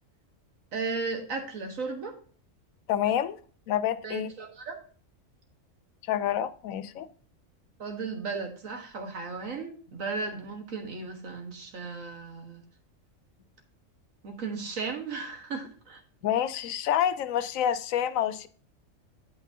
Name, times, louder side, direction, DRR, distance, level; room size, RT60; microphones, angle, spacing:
voice 1, 0.7-2.2 4.0-4.8 7.8-12.6 14.2-16.0, right 4 dB, 80° right, 1.8 m, -35 dB
voice 2, 2.9-3.4 3.7-4.3 6.1-7.1 16.2-18.5, left 10 dB, 85° left, 1.0 m, -27 dB
8.3 x 8.3 x 2.8 m
omnidirectional pair, 1.4 m